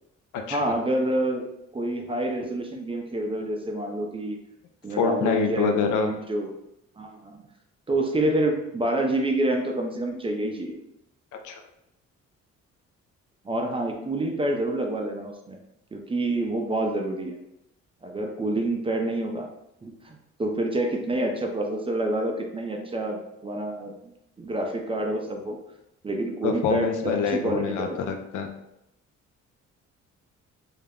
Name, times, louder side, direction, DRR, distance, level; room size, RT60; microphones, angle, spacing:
voice 1, 0.5-1.5 1.7-4.4 4.8-6.5 7.0-7.4 7.9-10.8 13.4-15.6 15.9-17.3 18.0-19.5 19.8-24.0 24.4-25.6 26.0-28.0, right 1 dB, 20° right, 2 dB, 0.4 m, -27 dB
voice 2, 5.0-6.1 11.3-11.6 26.4-28.5, left 5 dB, 80° left, 5 dB, 0.5 m, -26 dB
2.4 x 2.0 x 3.4 m, 0.84 s
cardioid pair, 90°, 30 cm